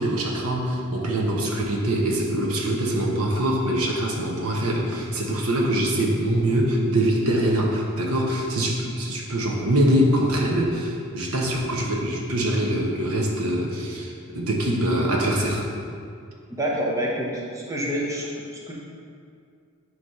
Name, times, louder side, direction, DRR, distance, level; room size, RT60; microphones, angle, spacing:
voice 1, 0.0-15.6, right 1 dB, 90° right, -1 dB, 1.1 m, -23 dB
voice 2, 16.5-18.7, equal, 15° right, -4 dB, 0.9 m, -27 dB
9.2 x 3.2 x 5.5 m, 2.3 s
head